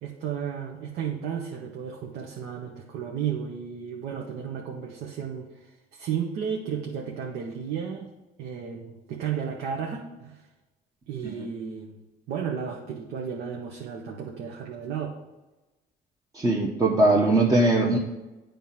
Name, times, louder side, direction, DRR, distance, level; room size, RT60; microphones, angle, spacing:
voice 1, 0.0-8.1 8.4-10.4 11.1-12.0 12.3-15.2, right 7 dB, 75° right, 0 dB, 1.0 m, -33 dB
voice 2, 16.3-18.0, right 2 dB, 20° right, -2 dB, 0.9 m, -21 dB
9.1 x 3.6 x 5.7 m, 1.1 s
cardioid pair, 110°, 17 cm